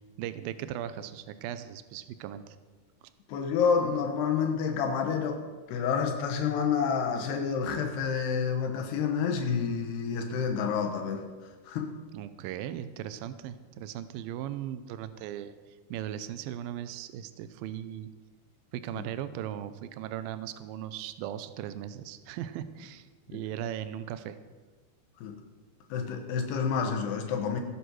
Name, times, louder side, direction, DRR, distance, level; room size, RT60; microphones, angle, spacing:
voice 1, 0.2-2.6 12.1-15.5 15.9-18.1 18.7-24.4, right 11 dB, 80° right, 12 dB, 2.2 m, -38 dB
voice 2, 3.3-5.4 5.7-11.3 11.7-11.9 19.0-19.1 23.3-23.4 25.2-25.4 25.9-27.6, left 6 dB, 80° left, 3 dB, 3.2 m, -29 dB
17.5 x 8.0 x 6.4 m, 1.4 s
omnidirectional pair, 4.7 m